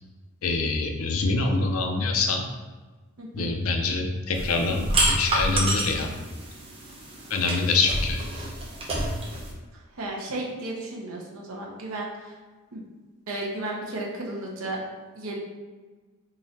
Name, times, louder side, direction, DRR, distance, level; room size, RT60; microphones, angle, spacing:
voice 1, 0.4-2.4 3.3-6.1 7.3-8.2, left 3 dB, 80° left, 3 dB, 0.5 m, -25 dB
voice 2, 3.2-3.5 9.9-12.4 12.7-12.8 13.3-14.8 15.2-15.4, right 2 dB, 75° right, -2 dB, 0.7 m, -34 dB
sound 1, 4.3-9.5, right 1 dB, 25° right, 0.7 m, -28 dB
3.8 x 3.0 x 2.8 m, 1.3 s
head